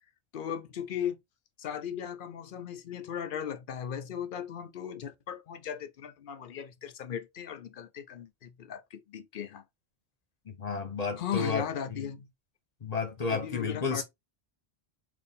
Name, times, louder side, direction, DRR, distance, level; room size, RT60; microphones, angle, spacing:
voice 1, 0.3-1.2 1.6-9.6 11.2-12.3 13.3-14.0, left 9 dB, 60° left, 0.6 m, -37 dB
voice 2, 10.5-11.6 11.9-12.1 12.8-14.0, left 4 dB, 40° left, 0.9 m, -32 dB
4.3 x 2.6 x 3.4 m
omnidirectional pair, 1.1 m